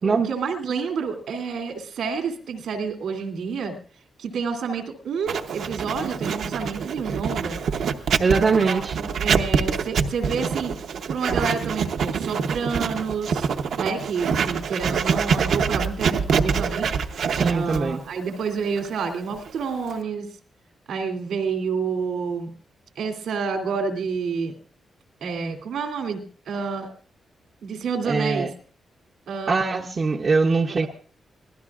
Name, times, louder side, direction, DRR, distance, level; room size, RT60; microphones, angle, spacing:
voice 1, 0.0-3.7 4.2-7.6 8.4-10.7 11.1-13.5 13.8-16.9 17.5-20.3 20.9-22.5 23.0-24.5 25.2-26.9 27.6-28.5 29.3-29.9 30.7-30.9, right 5 dB, 85° right, 2.7 m, -29 dB
Writing, 5.3-20.0, right 6 dB, 65° right, 0.8 m, -25 dB
voice 2, 8.2-8.9 17.3-18.0 28.0-28.5 29.5-30.9, right 4 dB, 30° right, 0.7 m, -22 dB
24.5 x 17.0 x 2.4 m
wide cardioid pair, 180°, 0 cm